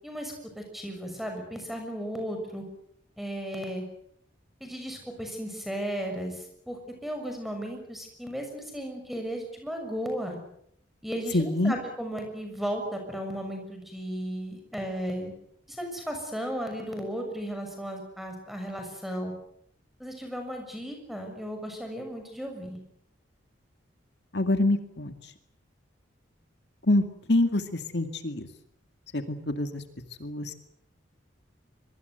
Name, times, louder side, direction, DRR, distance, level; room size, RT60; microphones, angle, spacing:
voice 1, 0.0-2.6 3.2-3.8 4.6-10.4 11.0-15.3 15.7-19.3 20.0-22.8, equal, ahead, 4 dB, 6.6 m, -35 dB
voice 2, 11.3-11.7 24.3-25.1 26.9-28.5 29.1-29.8 30.2-30.5, left 1 dB, 60° left, 7 dB, 2.2 m, -26 dB
25.0 x 23.5 x 8.1 m, 0.71 s
head